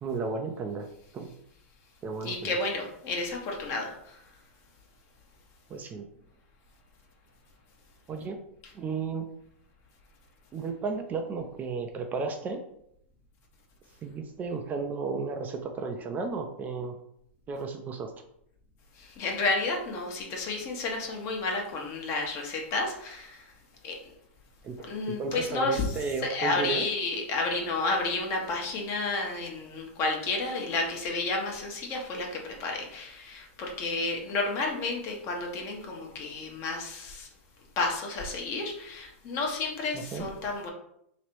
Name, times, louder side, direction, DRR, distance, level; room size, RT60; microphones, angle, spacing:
voice 1, 0.0-0.9 1.1-1.3 2.0-2.6 5.7-6.1 8.1-8.4 8.7-9.3 10.5-12.6 14.0-17.0 17.5-18.1 24.6-24.8 25.2-26.9 40.1-40.3, right 4 dB, 25° right, 4 dB, 0.5 m, -33 dB
voice 2, 2.2-4.2 8.6-8.7 18.9-23.5 23.8-24.1 24.8-37.3 37.8-40.7, left 3 dB, 40° left, 1 dB, 1.1 m, -31 dB
3.1 x 2.8 x 4.4 m, 0.74 s
hypercardioid pair, 115°, 7 cm